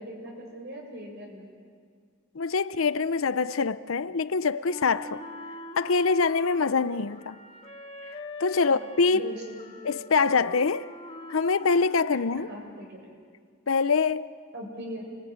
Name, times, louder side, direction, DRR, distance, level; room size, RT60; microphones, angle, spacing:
voice 1, 0.0-1.5 8.6-8.9 9.1-9.8 12.4-13.0 14.5-15.1, equal, 50° right, 7.0 m, -40 dB
voice 2, 2.3-5.2 5.8-7.4 8.4-9.3 9.8-10.9 11.3-12.5 13.7-14.3, left 4 dB, 70° left, 0.7 m, -24 dB
Wind instrument woodwind instrument, 4.7-12.9, left 1 dB, 25° left, 2.0 m, -43 dB
28.5 x 21.5 x 9.5 m
head